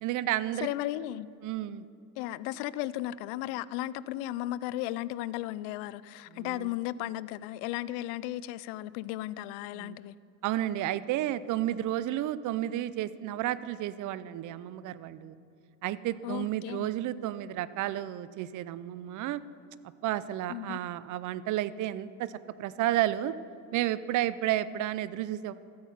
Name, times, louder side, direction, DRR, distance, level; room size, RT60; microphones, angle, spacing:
voice 1, 0.0-0.7 1.4-1.8 6.3-6.7 9.7-10.0 10.4-15.4 15.8-19.4 20.0-22.3 22.6-23.3 23.7-25.5, right 13 dB, 50° right, 0.5 m, -31 dB
voice 2, 0.6-1.3 2.2-10.2 16.2-16.9 20.5-20.8, left 14 dB, 80° left, 0.5 m, -35 dB
14.0 x 8.5 x 5.7 m
cardioid pair, 110°, 41 cm